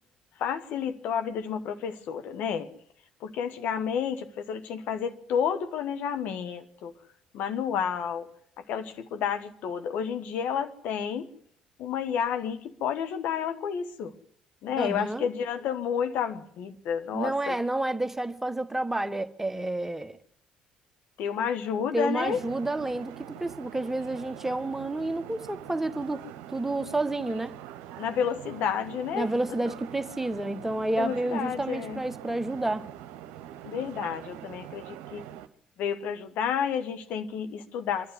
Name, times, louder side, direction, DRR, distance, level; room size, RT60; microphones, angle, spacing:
voice 1, 0.4-2.7 3.2-6.9 7.3-8.3 8.6-11.3 11.8-14.1 14.6-17.6 21.2-22.4 28.0-29.3 31.0-32.0 33.6-35.2 35.8-38.1, left 7 dB, 60° left, 1.4 m, -30 dB
voice 2, 14.8-15.2 17.1-20.2 21.9-26.2 26.5-27.6 29.1-32.9, right 2 dB, 10° right, 1.3 m, -30 dB
sound 1, 22.2-35.5, right 11 dB, 65° right, 0.9 m, -44 dB
26.0 x 12.0 x 9.6 m
figure-of-eight pair, 50°, 3 cm